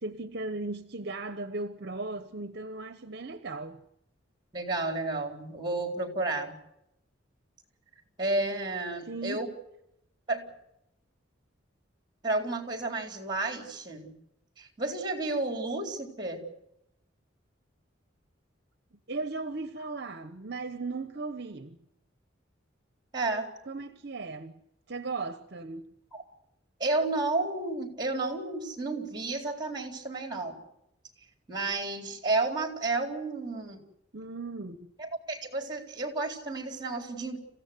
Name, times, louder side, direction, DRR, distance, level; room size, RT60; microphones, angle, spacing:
voice 1, 0.0-3.8 9.1-9.5 19.1-21.8 23.7-24.6 24.9-25.9 34.1-34.9, right 3 dB, 55° right, 1.0 m, -37 dB
voice 2, 4.5-6.5 8.2-9.5 10.3-10.5 12.2-14.1 14.6-16.5 23.1-23.5 26.1-26.2 26.8-30.6 31.5-33.8 35.0-37.4, right 2 dB, 20° right, 4.1 m, -31 dB
28.0 x 16.0 x 7.9 m
head